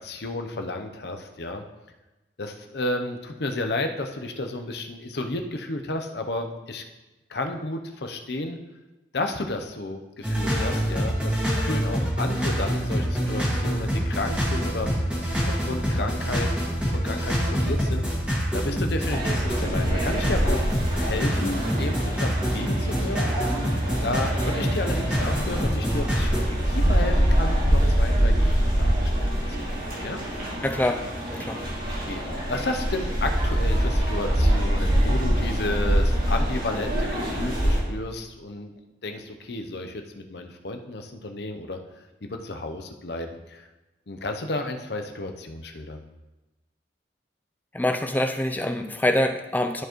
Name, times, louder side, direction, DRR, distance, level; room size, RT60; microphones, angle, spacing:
voice 1, 0.0-1.6 2.4-6.8 7.3-8.6 9.1-14.9 15.5-16.5 16.9-18.1 18.5-20.7 20.9-23.3 24.0-29.5 30.0-30.2 32.0-32.2 32.5-38.7 39.0-41.8 42.2-43.6 44.1-46.1, left 2 dB, 60° left, 5 dB, 0.7 m, -32 dB
sound 1, 10.2-26.4, equal, 5° right, 1.6 m, -26 dB
sound 2, 19.1-37.8, equal, 50° right, 2.8 m, -25 dB
voice 2, 30.6-31.0 31.3-31.6 47.7-49.8, left 1 dB, 10° left, 5 dB, 0.4 m, -25 dB
12.5 x 4.6 x 3.0 m, 1.1 s
head